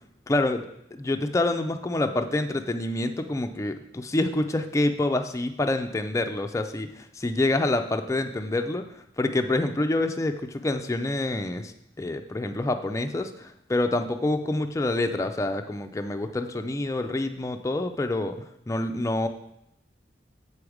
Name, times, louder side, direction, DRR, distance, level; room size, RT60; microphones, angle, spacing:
voice 1, 0.3-8.8 9.2-18.4 18.7-19.3, left 2 dB, 15° left, 7 dB, 0.3 m, -27 dB
6.9 x 5.0 x 4.7 m, 0.79 s
head